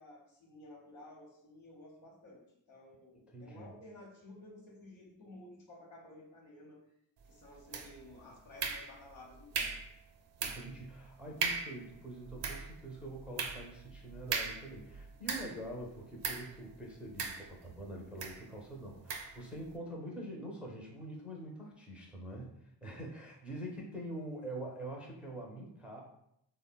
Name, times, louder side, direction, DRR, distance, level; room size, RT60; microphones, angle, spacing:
voice 1, 0.0-6.9 7.2-9.8, left 1 dB, 80° left, -1 dB, 1.0 m, -54 dB
voice 2, 3.3-3.7 10.4-22.5 22.8-26.0, right 1 dB, 5° right, -2 dB, 0.4 m, -45 dB
sound 1, 7.7-8.1 8.6-9.2 9.5-9.9 10.4-10.8 11.1-11.2 11.4-11.8 12.2-15.7 16.2-16.5 17.2-17.8 18.2-18.4 19.1-19.4, right 5 dB, 65° right, 0.5 m, -37 dB
3.5 x 2.1 x 2.2 m, 0.75 s
cardioid pair, 95°, 46 cm